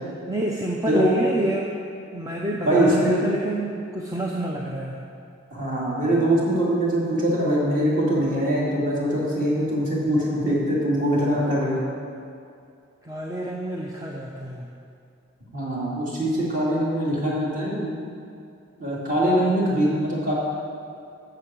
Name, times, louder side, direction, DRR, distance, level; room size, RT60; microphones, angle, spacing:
voice 1, 0.3-1.7 2.1-5.0 13.0-14.7, right 1 dB, 15° right, -1 dB, 0.5 m, -28 dB
voice 2, 2.6-3.1 5.5-11.8 15.5-17.9 18.8-20.3, right 1 dB, 40° right, -6 dB, 2.5 m, -22 dB
8.5 x 6.8 x 7.4 m, 2.5 s
head